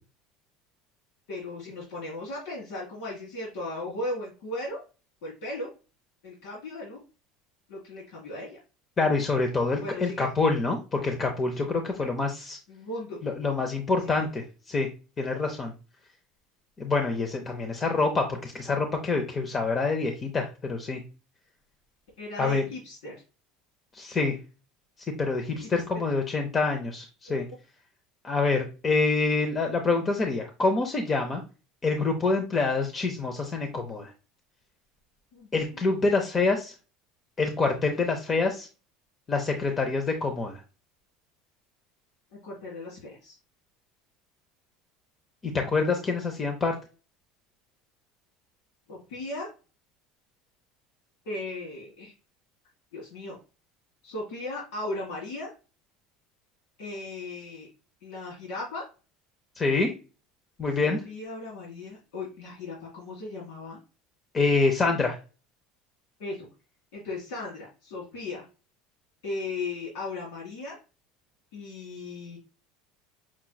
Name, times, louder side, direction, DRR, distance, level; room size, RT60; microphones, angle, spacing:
voice 1, 1.3-4.8 5.2-5.7 6.2-7.0 7.7-8.6 9.8-10.3 12.7-13.2 14.0-14.2 22.2-23.2 25.6-25.7 35.3-35.6 42.3-43.4 48.9-49.5 51.2-52.1 52.9-53.4 54.0-55.5 56.8-57.7 58.0-58.8 60.8-63.8 66.2-66.5 66.9-68.4 69.2-70.8 71.5-72.4, left 2 dB, 85° left, -4 dB, 1.8 m, -37 dB
voice 2, 9.0-12.6 13.2-14.9 15.2-15.7 16.8-21.0 22.4-22.6 23.9-24.4 25.2-27.4 28.2-31.4 31.8-34.1 35.5-36.7 37.4-38.7 39.3-40.6 45.4-46.7 59.6-59.9 60.6-61.0 64.3-65.2, left 3 dB, 20° left, 4 dB, 0.6 m, -26 dB
5.8 x 2.9 x 2.2 m, 0.33 s
cardioid pair, 150°, 0 cm